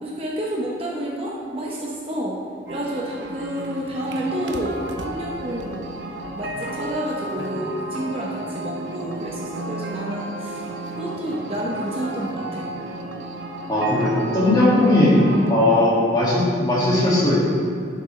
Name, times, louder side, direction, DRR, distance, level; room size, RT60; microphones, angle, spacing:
voice 1, 0.0-2.4 2.7-5.8 6.4-10.6 11.0-12.7, equal, 30° right, -3 dB, 0.8 m, -29 dB
sound 1, 2.7-15.5, right 2 dB, 75° right, 0.6 m, -33 dB
voice 2, 13.7-15.2 15.5-17.4, left 1 dB, 20° left, -8 dB, 1.9 m, -18 dB
11.5 x 6.0 x 3.2 m, 2.3 s
head